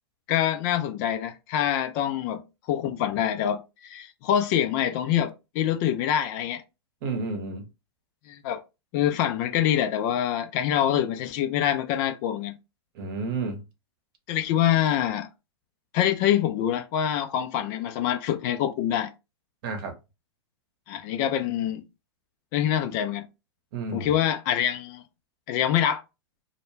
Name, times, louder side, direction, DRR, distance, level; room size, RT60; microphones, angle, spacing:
voice 1, 0.3-2.4 2.7-6.6 8.3-8.6 8.9-12.6 14.3-15.3 15.9-19.1 20.9-21.8 22.5-23.3 23.9-25.0 25.5-26.0, left 10 dB, 40° left, 0.4 m, -25 dB
voice 2, 7.0-7.6 12.9-13.6 19.6-19.9 23.7-24.1, right 4 dB, 50° right, 0.8 m, -31 dB
2.2 x 2.1 x 3.1 m
hypercardioid pair, 115°, 15 cm